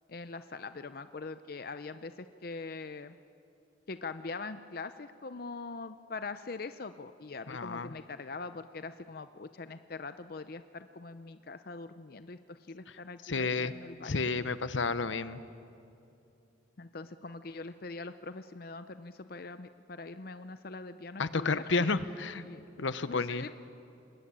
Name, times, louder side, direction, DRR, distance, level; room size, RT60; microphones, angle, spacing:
voice 1, 0.1-3.2 3.9-14.3 16.8-21.6 22.4-22.6 23.1-23.5, left 3 dB, 50° left, 11 dB, 0.6 m, -42 dB
voice 2, 7.5-7.9 13.2-13.7 14.0-15.4 21.2-22.4 22.8-23.4, left 3 dB, 80° left, 13 dB, 0.9 m, -31 dB
27.5 x 21.5 x 8.9 m, 2.7 s
head